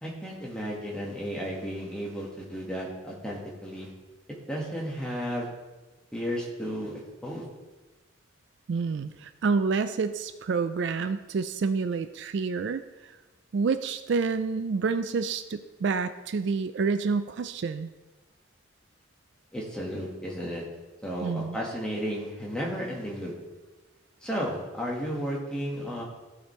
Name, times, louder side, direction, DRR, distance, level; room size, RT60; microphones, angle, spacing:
voice 1, 0.0-3.9 4.5-5.5 6.1-7.4 19.5-20.6 21.0-23.3 24.2-26.0, equal, 5° left, -4 dB, 1.6 m, -33 dB
voice 2, 8.7-12.8 13.5-17.9 21.2-21.6, right 4 dB, 60° right, 11 dB, 0.3 m, -28 dB
15.0 x 5.0 x 3.1 m, 1.2 s
head